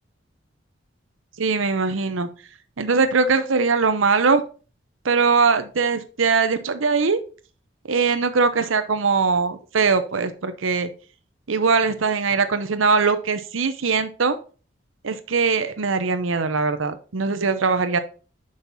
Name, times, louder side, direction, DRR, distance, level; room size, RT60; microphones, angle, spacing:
voice 1, 1.4-2.3 2.8-4.4 5.0-7.2 7.9-10.9 11.5-14.4 15.0-18.0, right 4 dB, 85° right, 10 dB, 0.7 m, -21 dB
6.4 x 5.4 x 4.1 m, 0.36 s
head